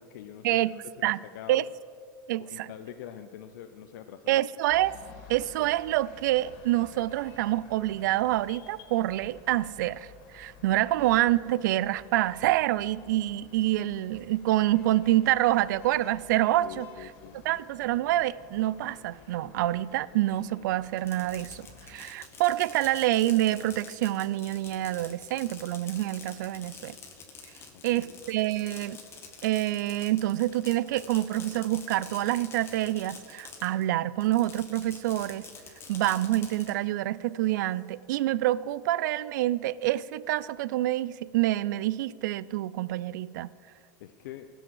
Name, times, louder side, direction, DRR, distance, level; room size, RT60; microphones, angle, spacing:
voice 1, 0.0-1.6 2.4-4.4 16.6-17.6 27.7-28.2 44.0-44.5, left 10 dB, 75° left, 7 dB, 0.7 m, -45 dB
voice 2, 2.3-2.7 4.3-4.9 5.3-17.1 17.4-26.9 27.8-29.0 29.4-35.5 35.9-43.5, right 15 dB, 80° right, 20 dB, 0.4 m, -27 dB
sound 1, 4.7-22.0, left 6 dB, 55° left, 2.4 m, -52 dB
Fireworks, 20.9-33.8 34.2-36.7, left 5 dB, 25° left, 1.7 m, -47 dB
16.0 x 6.3 x 7.6 m, 2.1 s
supercardioid pair, 130°, 10 cm